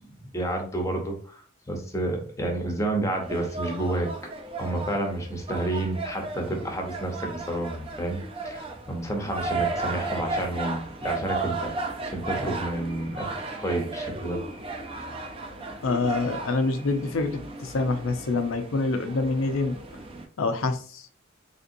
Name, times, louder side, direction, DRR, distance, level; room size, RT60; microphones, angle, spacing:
voice 1, 0.1-4.1 4.6-11.7 12.0-13.3 13.6-14.4, right 1 dB, 15° left, 3 dB, 0.7 m, -30 dB
sound 1, 3.2-20.3, right 3 dB, 25° right, 0.4 m, -35 dB
voice 2, 15.8-19.8 20.4-21.0, left 3 dB, 80° left, 7 dB, 0.5 m, -26 dB
3.4 x 2.6 x 2.6 m, 0.42 s
head